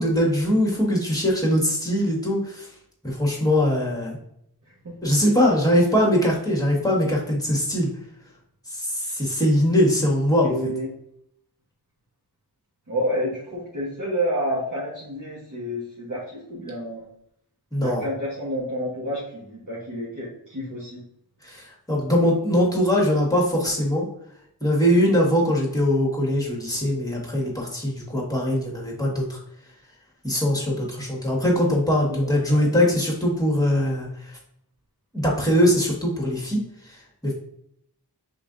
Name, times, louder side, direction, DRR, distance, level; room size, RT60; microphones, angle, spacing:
voice 1, 0.0-2.7 3.0-4.2 5.0-7.9 8.7-10.7 17.7-18.0 21.4-24.0 24.6-29.4 30.2-34.3 35.1-37.3, equal, 10° left, -3 dB, 1.6 m, -22 dB
voice 2, 4.7-5.0 10.4-10.9 12.9-17.0 17.8-21.0 32.0-32.7, equal, 50° right, -7 dB, 1.3 m, -29 dB
5.4 x 3.8 x 2.5 m, 0.74 s
wide cardioid pair, 60°, 40 cm